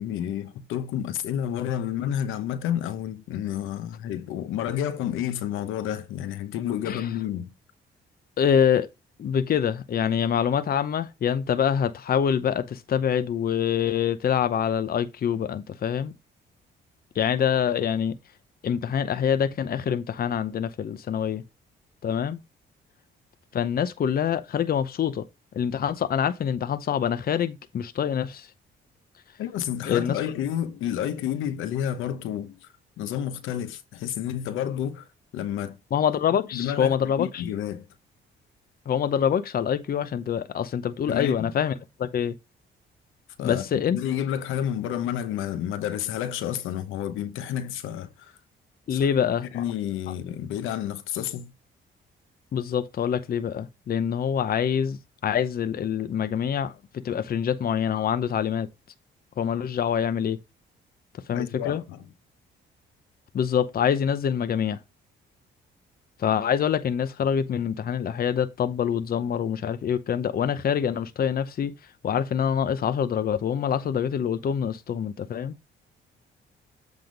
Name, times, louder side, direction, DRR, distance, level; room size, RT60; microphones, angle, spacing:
voice 1, 0.0-7.5 29.4-35.1 35.3-35.8 36.5-37.9 41.1-41.5 43.4-48.3 48.9-49.1 49.5-51.5 61.3-62.0, left 10 dB, 90° left, 0.9 m, -30 dB
voice 2, 8.4-8.9 9.2-16.1 17.2-18.2 18.6-21.4 22.0-22.4 23.5-25.3 25.5-28.5 29.9-30.2 35.9-37.4 38.9-41.7 42.0-42.3 43.4-44.0 48.9-49.6 52.5-55.0 55.2-58.7 59.4-60.4 61.3-61.8 63.3-64.8 66.2-71.7 72.0-75.5, left 8 dB, 50° left, 0.7 m, -25 dB
7.9 x 3.6 x 5.1 m
cardioid pair, 90°, 20 cm